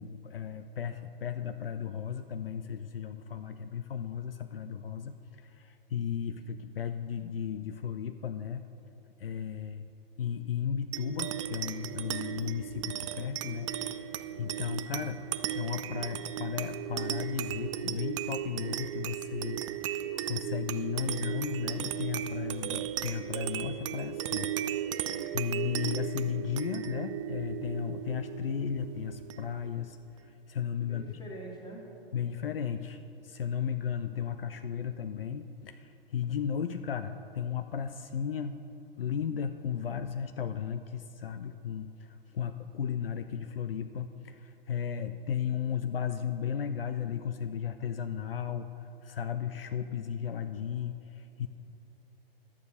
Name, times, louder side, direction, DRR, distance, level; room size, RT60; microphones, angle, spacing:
voice 1, 0.0-8.6 9.2-9.9 10.2-15.2 15.5-24.5 24.8-31.2 32.1-38.6 39.0-51.5, left 8 dB, 70° left, 10 dB, 0.5 m, -35 dB
sound 1, 10.9-29.8, right 11 dB, 35° right, 0.4 m, -36 dB
voice 2, 30.9-31.8, right 1 dB, 15° left, -1 dB, 1.9 m, -44 dB
11.5 x 7.2 x 6.6 m, 2.9 s
figure-of-eight pair, 105°, 30 cm